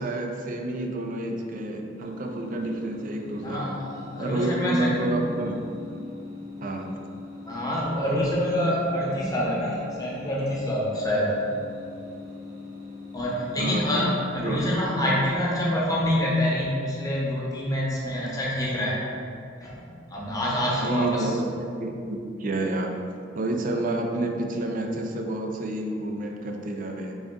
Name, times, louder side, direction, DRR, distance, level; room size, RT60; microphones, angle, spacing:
voice 1, 0.0-3.7 4.2-5.6 6.6-7.0 13.6-13.9 14.4-14.6 20.8-22.9 23.4-27.1, right 2 dB, 45° right, 3 dB, 0.4 m, -29 dB
sound 1, 2.0-14.3, left 4 dB, 75° right, 1.2 m, -42 dB
voice 2, 3.4-4.9 7.5-11.3 13.1-19.0 19.6-21.3, equal, 20° left, -5 dB, 0.8 m, -26 dB
3.8 x 3.5 x 3.6 m, 2.4 s
head